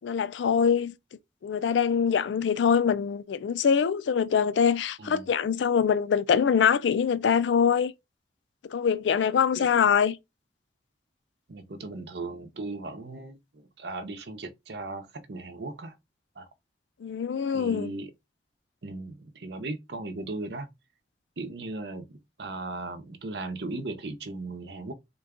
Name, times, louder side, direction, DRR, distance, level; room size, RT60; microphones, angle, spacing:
voice 1, 0.0-0.9 1.4-7.9 8.7-10.2 17.0-17.9, left 7 dB, 80° left, 0.4 m, -24 dB
voice 2, 11.5-13.4 13.8-15.9 16.4-16.5 17.5-18.1 18.8-20.7 21.4-24.9, right 2 dB, 65° right, 0.7 m, -37 dB
3.8 x 2.3 x 3.6 m
head